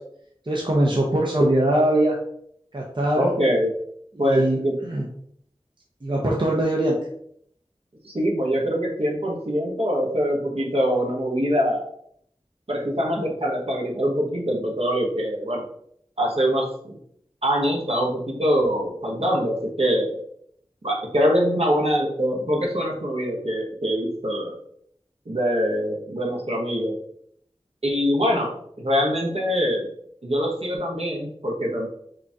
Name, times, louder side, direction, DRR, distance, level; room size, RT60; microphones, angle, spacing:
voice 1, 0.5-2.2 2.7-3.3 4.2-5.1 6.0-7.0, right 1 dB, 50° right, -2 dB, 0.8 m, -21 dB
voice 2, 3.1-3.7 4.2-4.7 8.0-11.8 12.7-15.7 16.2-17.0 17.4-20.2 20.8-24.5 25.3-27.0 27.8-29.9 30.2-31.9, equal, 70° right, -1 dB, 1.3 m, -23 dB
5.0 x 3.5 x 2.9 m, 0.67 s
wide cardioid pair, 45°, 11 cm